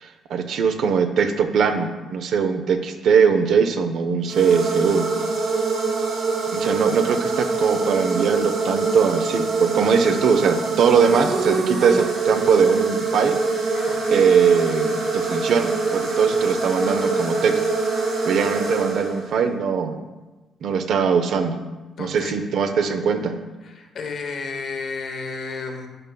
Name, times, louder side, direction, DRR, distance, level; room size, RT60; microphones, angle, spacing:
voice 1, 0.0-5.1 6.5-13.4 14.1-17.6 18.3-20.0 20.6-21.6 22.0-23.3, right 6 dB, 70° right, 8 dB, 0.6 m, -20 dB
sound 1, 4.3-19.5, right 4 dB, 85° right, 1.7 m, -24 dB
sound 2, 13.7-19.3, left 5 dB, 35° left, 0.6 m, -38 dB
voice 2, 22.0-22.3 23.6-25.9, left 4 dB, 60° left, 4 dB, 0.9 m, -32 dB
11.0 x 5.4 x 2.3 m, 1.1 s
cardioid pair, 90°, 0 cm